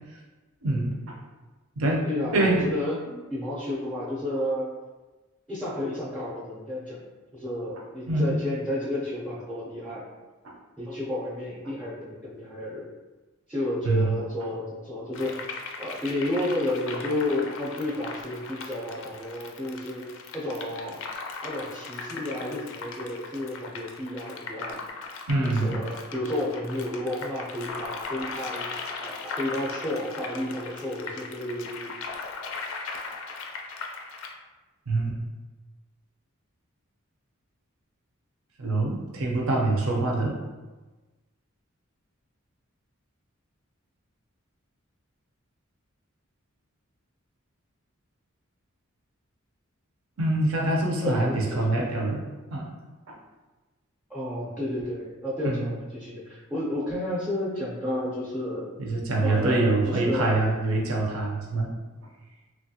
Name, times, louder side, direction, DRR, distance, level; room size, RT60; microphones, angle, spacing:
voice 1, 0.6-1.2 1.8-2.7 8.1-8.4 10.4-10.5 13.8-14.1 25.3-25.8 34.9-35.2 38.6-40.4 50.2-52.2 52.5-52.7 53.1-53.2 55.4-55.6 58.8-61.7, right 2 dB, 75° right, -1 dB, 0.6 m, -25 dB
voice 2, 2.0-3.0 3.3-4.7 5.5-7.1 7.3-10.1 10.8-12.9 13.5-15.4 15.8-20.0 20.3-21.0 21.4-24.8 25.4-28.7 29.0-31.9 51.0-51.6 54.1-58.7 59.2-60.5, left 1 dB, 5° right, -7 dB, 0.5 m, -31 dB
sound 1, 15.1-34.3, left 4 dB, 65° left, 0.4 m, -38 dB
3.0 x 2.3 x 2.7 m, 1.2 s
head